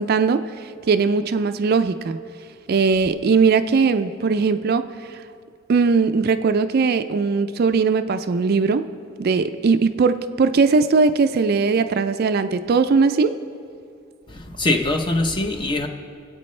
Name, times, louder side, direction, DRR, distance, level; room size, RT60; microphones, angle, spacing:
voice 1, 0.0-2.2 2.7-4.9 5.7-8.9 9.2-13.4, right 4 dB, 50° right, 10 dB, 0.4 m, -19 dB
voice 2, 14.3-15.9, left 2 dB, 25° left, 5 dB, 0.7 m, -22 dB
24.0 x 8.4 x 3.2 m, 2.4 s
head